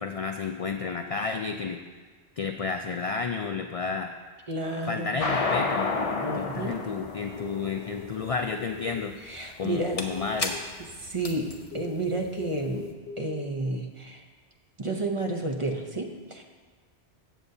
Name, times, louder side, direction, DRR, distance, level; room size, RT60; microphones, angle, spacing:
voice 1, 0.0-1.8 2.4-4.1 4.8-5.9 6.3-9.1 9.6-10.6, left 5 dB, 60° left, 5 dB, 0.3 m, -31 dB
voice 2, 4.5-5.2 6.2-6.8 9.2-10.0 11.0-12.9 13.2-14.2 14.8-16.4, right 2 dB, 30° right, 2 dB, 0.7 m, -31 dB
sound 1, 5.2-12.7, left 4 dB, 35° left, 0.7 m, -31 dB
sound 2, 7.4-8.0 8.5-9.0 9.6-10.6 11.7-13.4, left 6 dB, 75° left, 1.0 m, -41 dB
14.0 x 8.2 x 2.7 m, 1.4 s
omnidirectional pair, 1.1 m